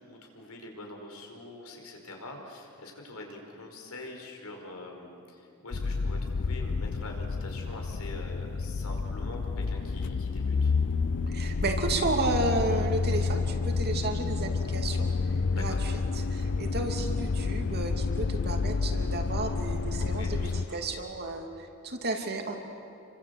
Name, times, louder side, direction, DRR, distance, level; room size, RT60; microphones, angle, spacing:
voice 1, 0.0-10.7 15.5-15.8 20.0-20.9, left 2 dB, 85° left, 2 dB, 5.0 m, -44 dB
sound 1, 5.7-20.7, left 4 dB, 55° left, 0.5 m, -29 dB
voice 2, 11.3-15.1 15.6-22.5, right 2 dB, 50° right, 3 dB, 2.9 m, -32 dB
28.0 x 24.5 x 8.3 m, 2.8 s
head